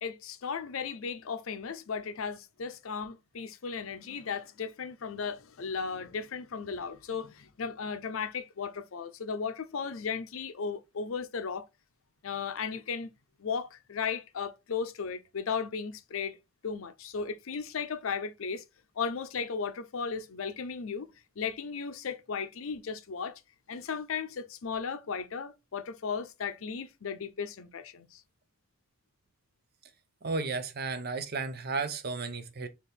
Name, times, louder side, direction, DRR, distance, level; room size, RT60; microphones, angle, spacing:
voice 1, 0.0-11.7 12.2-13.1 13.4-16.4 16.6-18.6 19.0-21.1 21.4-23.4 23.7-28.2, left 5 dB, 80° left, 0.6 m, -35 dB
voice 2, 30.2-32.7, right 4 dB, 50° right, 0.6 m, -33 dB
4.2 x 2.9 x 3.3 m
head